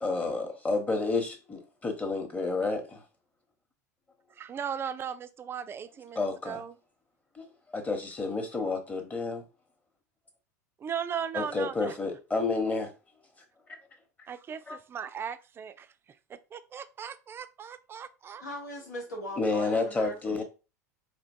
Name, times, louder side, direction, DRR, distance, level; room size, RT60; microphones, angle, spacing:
voice 1, 0.0-3.0 6.2-6.6 7.3-9.4 11.3-12.9 14.7-14.8 19.4-20.4, left 3 dB, 15° left, 1.0 m, -30 dB
voice 2, 4.3-6.7 10.8-12.0 14.3-15.9 16.3-18.4, right 8 dB, 25° right, 0.4 m, -37 dB
voice 3, 18.4-20.4, equal, 80° left, 1.0 m, -39 dB
4.4 x 2.8 x 2.6 m
hypercardioid pair, 85°, 9 cm